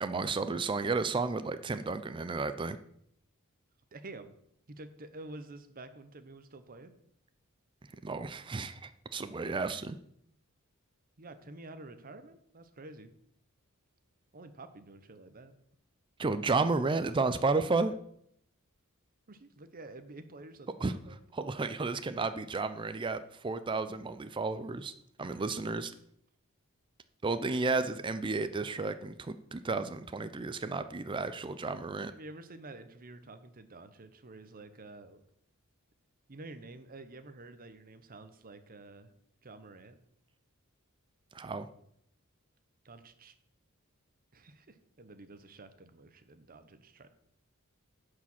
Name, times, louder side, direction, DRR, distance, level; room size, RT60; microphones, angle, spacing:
voice 1, 0.0-2.8 8.0-10.0 16.2-17.9 20.8-21.0 21.3-24.9 25.2-25.9 27.2-32.1 41.3-41.7, right 3 dB, 20° right, 11 dB, 0.4 m, -32 dB
voice 2, 3.9-4.3 4.7-6.9 11.2-13.1 14.3-15.5 19.3-21.2 25.2-25.3 25.7-25.8 32.1-35.2 36.3-39.1 39.4-40.0 42.8-43.3 44.3-47.1, right 2 dB, 40° right, 10 dB, 0.9 m, -49 dB
10.0 x 4.9 x 7.2 m, 0.71 s
head